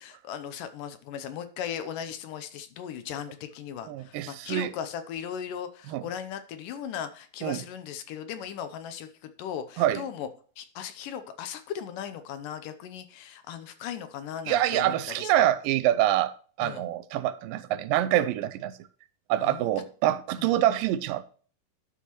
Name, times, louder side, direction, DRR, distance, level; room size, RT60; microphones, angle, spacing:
voice 1, 0.0-10.3 10.6-15.5 16.6-16.9 19.4-19.7 20.4-20.5, left 9 dB, 75° left, 2.3 m, -37 dB
voice 2, 3.9-4.7 5.9-6.0 7.4-7.6 9.8-10.0 14.5-16.3 16.6-18.7 19.3-21.2, right 13 dB, 80° right, 2.2 m, -25 dB
11.5 x 6.5 x 3.0 m
omnidirectional pair, 4.1 m